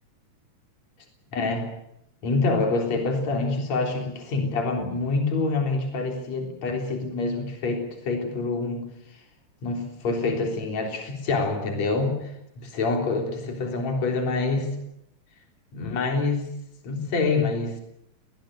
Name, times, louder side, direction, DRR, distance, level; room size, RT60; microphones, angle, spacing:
voice 1, 1.3-1.7 2.2-8.9 9.6-14.7 15.7-16.5 16.8-17.8, left 3 dB, 60° left, 3 dB, 4.8 m, -26 dB
21.0 x 19.5 x 9.1 m, 0.79 s
omnidirectional pair, 3.5 m